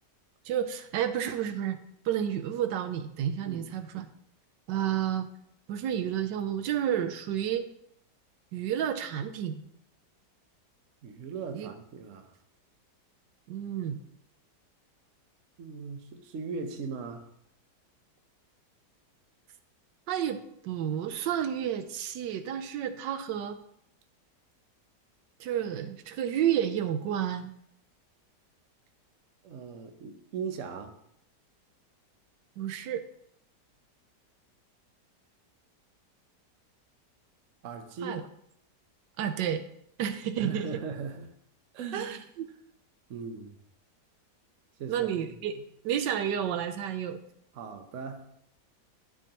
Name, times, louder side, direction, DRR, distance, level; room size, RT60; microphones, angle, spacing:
voice 1, 0.4-1.8 2.0-4.1 4.7-5.3 5.7-7.7 8.5-9.6 11.5-11.7 13.5-14.0 20.1-23.6 25.4-27.5 32.6-33.0 38.0-38.2 39.2-39.6 40.0-40.7 41.9-42.5 44.9-45.6 45.8-47.2, right 9 dB, 80° right, 1.2 m, -30 dB
voice 2, 11.0-12.3 15.6-17.3 29.4-30.9 37.6-38.2 40.4-41.3 41.7-42.2 43.1-43.5 44.8-45.6 47.5-48.3, right 5 dB, 55° right, 1.0 m, -39 dB
12.0 x 4.6 x 2.9 m
omnidirectional pair, 1.9 m